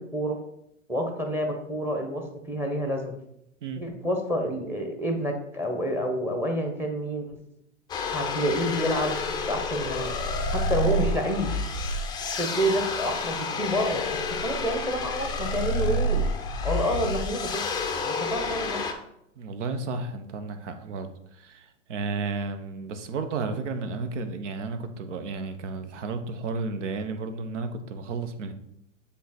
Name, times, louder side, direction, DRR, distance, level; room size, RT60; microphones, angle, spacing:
voice 1, 0.9-3.2 3.8-7.4 8.1-9.2 9.5-10.1 10.5-11.5 12.4-16.3 16.6-17.6 18.0-18.8, equal, 5° right, 4 dB, 0.9 m, -28 dB
sound 1, 7.9-18.9, left 2 dB, 10° left, 0.5 m, -29 dB
voice 2, 19.4-28.5, right 4 dB, 65° right, 8 dB, 1.0 m, -33 dB
7.4 x 3.5 x 4.3 m, 0.77 s
hypercardioid pair, 115°, 39 cm